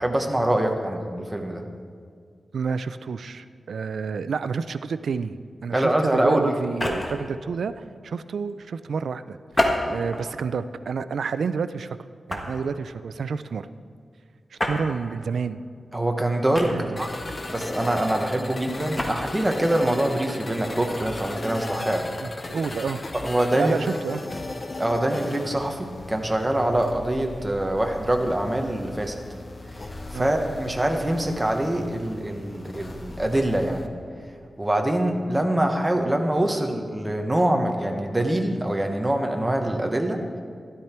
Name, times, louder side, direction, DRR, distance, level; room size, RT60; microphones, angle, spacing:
voice 1, 0.0-1.6 5.7-6.5 15.9-16.7 17.0-17.1 17.5-22.0 23.1-23.8 24.8-29.2 29.8-33.8 34.6-40.2, right 1 dB, 15° right, 3 dB, 1.2 m, -24 dB
voice 2, 2.5-12.0 12.3-13.7 14.5-15.6 16.6-17.0 22.2-23.0 23.6-24.2 30.1-30.3, right 5 dB, 85° right, 13 dB, 0.4 m, -29 dB
sound 1, 6.6-7.3 9.5-10.3 10.9-11.1 12.3-12.7 14.6-14.8 16.5-17.1 18.8-19.2, left 1 dB, 20° left, 1.4 m, -27 dB
sound 2, 17.0-33.9, left 2 dB, 35° left, 0.8 m, -37 dB
12.5 x 12.0 x 4.4 m, 2.1 s
wide cardioid pair, 125°, 0 cm